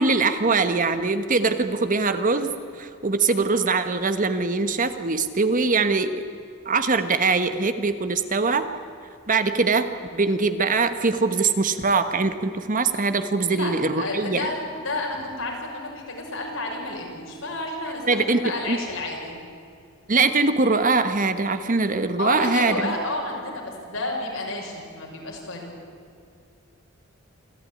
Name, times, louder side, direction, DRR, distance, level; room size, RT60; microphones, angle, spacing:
voice 1, 0.0-6.2 6.6-8.6 9.3-14.5 18.1-18.4 18.7-18.8 20.1-22.9, right 3 dB, 40° right, 9 dB, 1.3 m, -22 dB
voice 2, 13.5-19.4 22.2-25.7, left 2 dB, 85° left, 0 dB, 6.1 m, -31 dB
26.5 x 15.0 x 9.9 m, 2.4 s
head